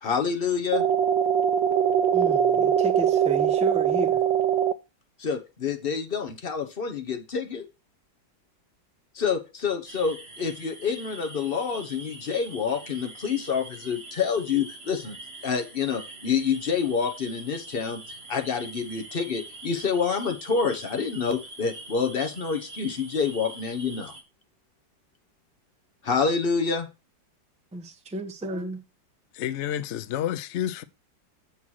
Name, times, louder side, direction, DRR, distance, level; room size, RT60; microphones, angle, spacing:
voice 1, 0.0-0.8 5.2-7.6 9.1-15.2 15.4-18.0 18.3-24.1 26.0-26.9, left 6 dB, 40° left, 0.9 m, -27 dB
sound 1, 0.7-4.7, right 8 dB, 80° right, 1.3 m, -22 dB
voice 2, 2.1-4.2 27.7-28.8, equal, 5° right, 0.6 m, -33 dB
sound 2, 9.9-24.2, right 2 dB, 35° right, 1.7 m, -44 dB
voice 3, 29.3-30.8, left 11 dB, 80° left, 0.6 m, -29 dB
7.3 x 4.6 x 6.2 m
omnidirectional pair, 2.0 m